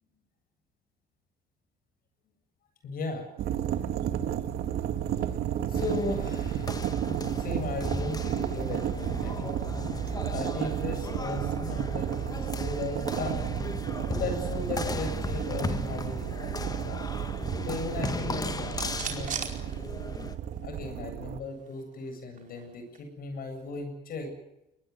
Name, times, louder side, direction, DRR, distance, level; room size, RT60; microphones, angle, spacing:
voice 1, 2.8-3.2 5.1-5.3 5.7-9.7 10.3-13.6 14.1-17.1 17.7-19.6 20.6-24.3, left 3 dB, 60° left, 6 dB, 7.7 m, -37 dB
sound 1, 3.4-21.4, right 10 dB, 70° right, 2.0 m, -32 dB
sound 2, 5.7-20.4, left 4 dB, 20° left, 1.8 m, -37 dB
sound 3, 18.1-20.5 20.8-20.9 21.2-23.1, right 7 dB, 50° right, 4.7 m, -41 dB
22.5 x 20.0 x 9.6 m, 0.89 s
cardioid pair, 110°, 17 cm